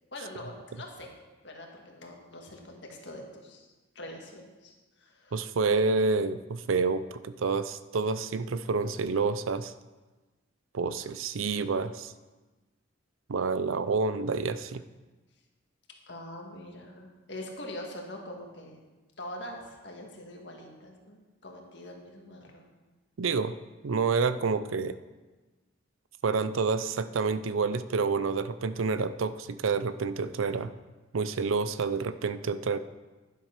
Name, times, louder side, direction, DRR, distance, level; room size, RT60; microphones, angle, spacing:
voice 1, 0.1-1.1 1.4-5.4 16.1-18.8 19.2-22.7, left 1 dB, 60° left, 1 dB, 1.9 m, -44 dB
voice 2, 5.3-9.7 10.7-12.1 13.3-14.8 23.2-23.6 23.8-25.0 26.2-30.7 31.1-32.8, right 4 dB, 80° right, 13 dB, 0.5 m, -28 dB
11.0 x 7.5 x 5.8 m, 1.2 s
head